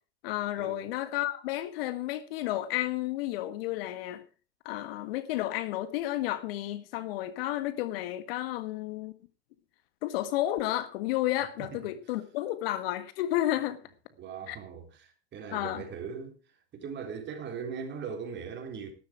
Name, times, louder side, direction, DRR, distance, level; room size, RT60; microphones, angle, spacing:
voice 1, 0.2-4.2 4.7-9.1 10.0-13.8 14.5-14.6 15.5-15.8, left 14 dB, 60° left, 1.6 m, -32 dB
voice 2, 14.2-16.4 16.7-18.9, right 6 dB, 35° right, 3.9 m, -39 dB
12.5 x 12.0 x 4.8 m
hypercardioid pair, 100°, 33 cm